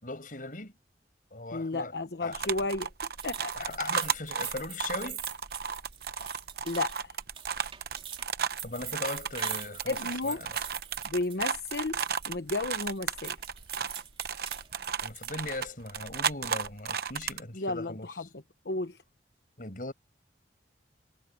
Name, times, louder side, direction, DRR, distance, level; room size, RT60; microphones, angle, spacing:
voice 1, 0.0-0.7 1.3-2.5 3.5-5.2 8.6-10.6 15.0-18.3 19.6-19.9, left 2 dB, 50° left, 6.0 m, -39 dB
voice 2, 1.5-2.9 3.2-3.7 6.6-7.2 9.9-10.4 11.0-13.4 17.5-18.3 18.6-19.0, left 2 dB, 70° left, 1.0 m, -33 dB
sound 1, 2.3-17.4, right 7 dB, 60° right, 0.9 m, -34 dB
sound 2, 3.2-12.3 12.6-15.4, right 9 dB, 30° right, 2.9 m, -43 dB
head